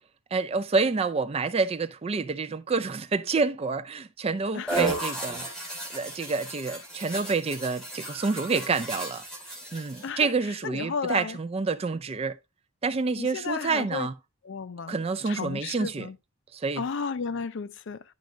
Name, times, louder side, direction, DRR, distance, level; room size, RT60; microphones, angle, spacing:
voice 1, 0.3-5.7 5.9-9.2 9.7-12.4 12.8-14.1 14.9-16.1 16.5-16.8, right 4 dB, 30° right, 0.4 m, -28 dB
sound 1, 4.7-10.1, right 2 dB, ahead, 2.3 m, -34 dB
voice 2, 10.6-11.4 13.2-14.1 14.4-15.0 15.3-16.1 16.8-18.0, left 5 dB, 55° left, 0.4 m, -33 dB
10.5 x 5.3 x 2.3 m
head